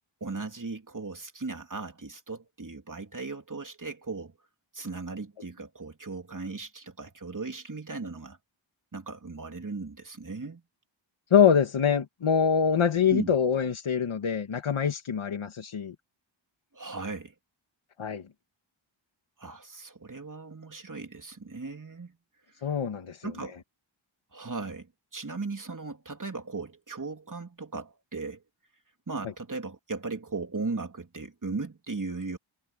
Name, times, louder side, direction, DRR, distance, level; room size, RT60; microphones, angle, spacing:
voice 1, 0.2-4.3 4.7-8.4 8.9-10.6 13.1-13.3 16.7-17.3 19.4-22.1 23.2-23.6 24.3-28.4 29.1-32.4, right 3 dB, 40° right, 3.4 m, -37 dB
voice 2, 11.3-16.0 18.0-18.3 22.6-23.3, left 7 dB, 85° left, 1.9 m, -24 dB
wide cardioid pair, 65°, 48 cm